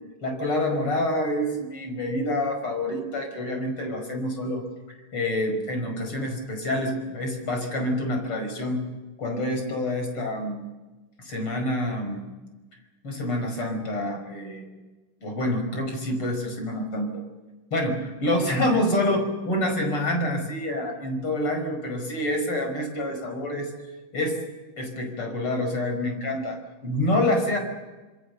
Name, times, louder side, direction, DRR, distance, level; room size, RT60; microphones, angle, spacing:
voice 1, 0.2-4.6 5.1-8.9 9.2-10.6 11.2-12.3 13.0-14.6 15.2-17.1 17.7-23.7 24.1-24.4 24.8-27.6, left 1 dB, 35° left, 5 dB, 6.2 m, -27 dB
27.0 x 24.0 x 6.9 m, 1.2 s
omnidirectional pair, 4.2 m